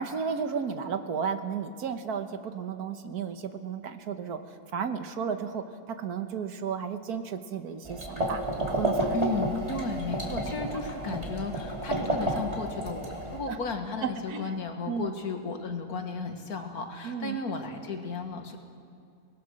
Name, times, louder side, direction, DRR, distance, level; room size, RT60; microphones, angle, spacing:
voice 1, 0.0-4.4 4.7-8.4 8.7-9.3 9.7-9.8 11.0-11.2 13.5-13.6 14.0-14.5 14.9-15.1 17.0-17.4, right 6 dB, 75° right, 8 dB, 1.6 m, -33 dB
sound 1, 7.8-13.4, right 1 dB, 25° right, 3.0 m, -31 dB
voice 2, 9.1-18.6, left 3 dB, 70° left, 5 dB, 2.0 m, -34 dB
24.5 x 19.0 x 6.4 m, 2.4 s
omnidirectional pair, 1.7 m